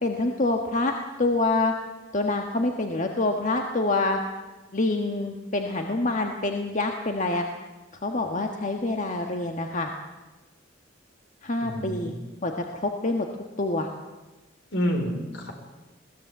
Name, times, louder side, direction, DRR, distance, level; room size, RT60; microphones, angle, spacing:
voice 1, 0.0-1.7 2.1-4.2 4.7-7.4 8.0-9.9 11.4-12.1 12.4-13.3 13.6-13.9, left 2 dB, 40° left, 3 dB, 1.4 m, -26 dB
voice 2, 11.6-12.2 14.7-15.5, equal, 70° left, 5 dB, 4.1 m, -28 dB
21.0 x 17.0 x 8.2 m, 1.1 s
head